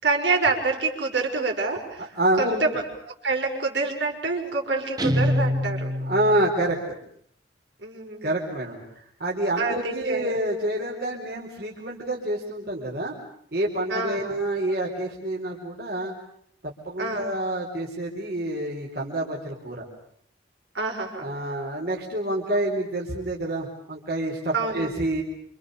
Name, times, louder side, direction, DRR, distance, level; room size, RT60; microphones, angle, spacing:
voice 1, 0.0-2.1 2.4-5.9 7.8-8.3 9.6-10.3 13.9-14.4 17.0-17.3 20.7-21.3 24.5-25.0, right 3 dB, 75° right, 1 dB, 6.0 m, -27 dB
voice 2, 2.0-2.6 6.0-6.8 8.2-8.8 9.2-13.1 13.5-16.1 16.6-19.8 21.2-25.2, right 1 dB, 55° right, -3 dB, 4.6 m, -27 dB
Guitar, 5.0-6.7, left 1 dB, 20° right, 1.9 m, -25 dB
28.0 x 28.0 x 6.9 m, 0.66 s
head